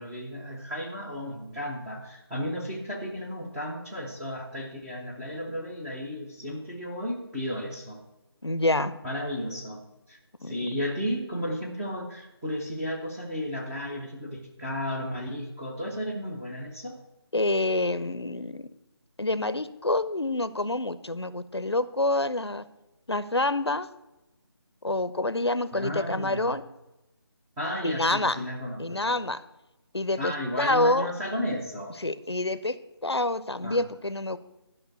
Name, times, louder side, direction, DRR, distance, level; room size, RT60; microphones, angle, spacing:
voice 1, 0.0-8.0 9.0-9.8 10.1-17.0 25.7-26.5 27.6-29.2 30.2-32.0 33.6-33.8, equal, 5° right, -4 dB, 0.5 m, -33 dB
voice 2, 8.4-9.0 10.4-10.6 17.3-18.7 19.2-22.6 23.1-23.9 24.8-26.6 27.8-28.4 28.8-29.4 29.9-31.1 32.0-34.4, left 2 dB, 85° left, 15 dB, 0.7 m, -27 dB
12.0 x 5.6 x 6.7 m, 0.98 s
figure-of-eight pair, 155°, 13 cm